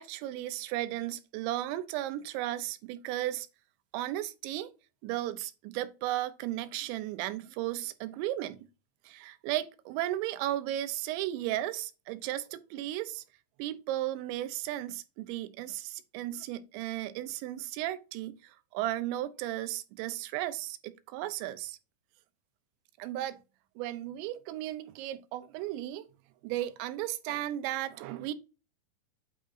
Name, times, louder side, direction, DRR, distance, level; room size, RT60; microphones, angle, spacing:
voice 1, 0.0-3.5 3.9-4.7 5.0-8.6 9.0-13.2 13.6-21.8 23.0-23.4 23.8-26.1 26.4-28.3, right 14 dB, 85° right, 3.0 m, -35 dB
9.1 x 3.6 x 3.9 m
omnidirectional pair, 5.1 m